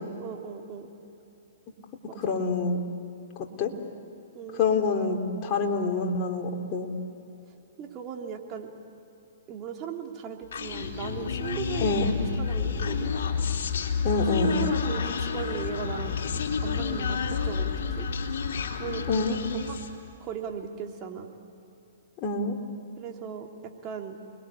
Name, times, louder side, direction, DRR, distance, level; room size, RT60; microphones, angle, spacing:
voice 1, 0.2-0.9 2.2-2.4 4.3-4.6 7.8-8.7 9.5-13.1 14.3-16.2 16.6-18.1 18.7-19.8 20.2-21.3 23.0-24.2, right 8 dB, 30° right, 1 dB, 3.1 m, -37 dB
voice 2, 2.2-2.8 3.6-3.7 4.5-6.9 11.8-12.1 14.0-14.6 19.1-19.4 22.2-22.6, left 4 dB, 35° left, 1 dB, 3.5 m, -26 dB
Human voice, 10.5-20.0, left 6 dB, 60° left, 3.4 m, -29 dB
29.5 x 22.0 x 8.5 m, 2.9 s
hypercardioid pair, 125°, 0 cm